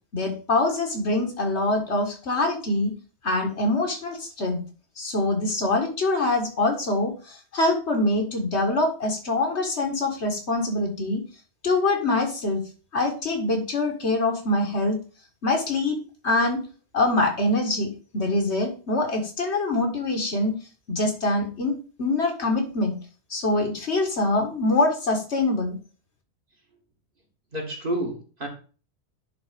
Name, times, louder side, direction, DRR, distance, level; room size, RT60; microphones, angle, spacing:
voice 1, 0.1-2.9 3.2-4.6 5.0-11.2 11.6-12.7 12.9-15.0 15.4-16.0 16.2-16.6 16.9-20.6 20.9-22.9 23.3-25.8, left 2 dB, 75° left, 3 dB, 2.0 m, -24 dB
voice 2, 27.5-28.5, right 1 dB, 50° right, 0 dB, 2.4 m, -29 dB
10.5 x 4.0 x 5.1 m, 0.38 s
omnidirectional pair, 1.1 m